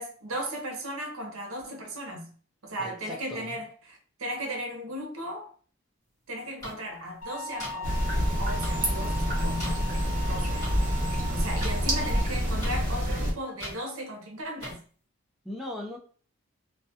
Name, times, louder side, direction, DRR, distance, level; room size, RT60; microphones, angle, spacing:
voice 1, 0.0-2.3 2.6-5.5 6.3-14.8, right 1 dB, 75° right, 0.7 m, -36 dB
voice 2, 2.8-3.6 15.4-16.0, left 1 dB, ahead, 0.5 m, -38 dB
sound 1, 6.6-6.7 7.6-7.7 8.6-8.7 9.6-9.7 10.6-10.7 11.6-11.7 12.6-12.7 13.6-13.7 14.6-14.7, left 1 dB, 15° left, 1.1 m, -37 dB
sound 2, 7.2-12.2, equal, 70° left, 0.8 m, -39 dB
sound 3, 7.8-13.3, equal, 40° right, 0.9 m, -27 dB
2.3 x 2.1 x 2.7 m
head